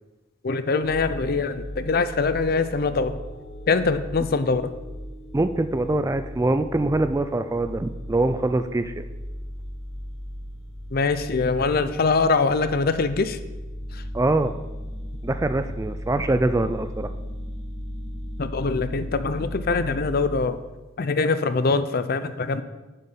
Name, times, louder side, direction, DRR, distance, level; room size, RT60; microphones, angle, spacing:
voice 1, 0.4-3.1 3.7-4.7 10.9-13.4 13.9-14.0 18.4-20.6 21.0-22.6, left 4 dB, 45° left, 12 dB, 0.5 m, -23 dB
sound 1, 0.8-20.4, equal, 5° left, 2.3 m, -36 dB
voice 2, 5.3-9.0 14.1-14.5 15.2-17.1, right 2 dB, 15° right, 10 dB, 0.3 m, -24 dB
7.1 x 6.8 x 5.6 m, 1.1 s
head